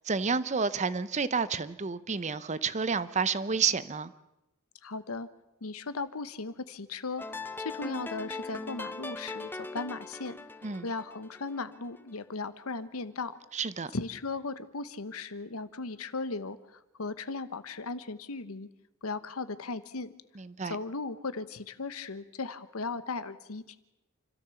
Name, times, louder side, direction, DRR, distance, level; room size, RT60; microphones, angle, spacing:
voice 1, 0.1-4.1 10.6-10.9 13.5-13.9 20.4-20.8, right 5 dB, 35° right, 15 dB, 0.7 m, -30 dB
voice 2, 4.8-5.3 5.6-10.4 10.8-13.4 13.9-18.7 19.0-20.1 20.6-23.8, left 3 dB, 85° left, 13 dB, 1.0 m, -37 dB
sound 1, 7.2-12.3, left 2 dB, 10° left, 0.8 m, -41 dB
29.0 x 13.0 x 7.0 m, 0.93 s
head